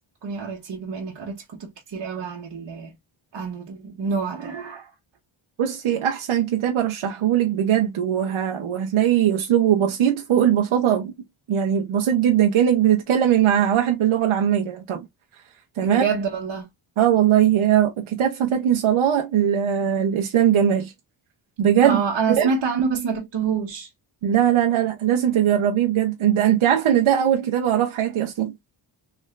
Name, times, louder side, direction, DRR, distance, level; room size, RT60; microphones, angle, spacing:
voice 1, 0.2-2.9 3.3-4.9 15.8-16.7 21.8-23.9, right 5 dB, 60° right, 1.2 m, -27 dB
voice 2, 5.6-11.1 11.5-15.0 15.8-16.1 17.0-20.9 21.6-22.0 22.3-22.5 24.2-28.5, right 10 dB, 80° right, 0.9 m, -20 dB
3.5 x 3.2 x 2.5 m
cardioid pair, 75°, 48 cm